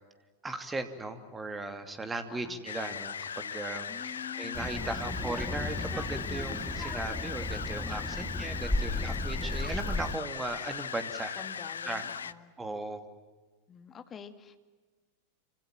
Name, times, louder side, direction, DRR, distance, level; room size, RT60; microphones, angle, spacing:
voice 1, 0.4-11.4 11.8-12.0 12.6-13.0, right 2 dB, 15° right, 9 dB, 2.8 m, -37 dB
voice 2, 2.3-2.6 3.9-5.7 8.2-8.5 11.4-12.5 13.7-14.6, left 8 dB, 25° left, 8 dB, 2.1 m, -48 dB
sound 1, 2.7-12.3, left 7 dB, 70° left, 0.8 m, -39 dB
Child speech kid speaking, 4.5-10.2, left 2 dB, 5° left, 2.0 m, -35 dB
27.5 x 26.0 x 7.6 m, 1.3 s
figure-of-eight pair, 90°, 0 cm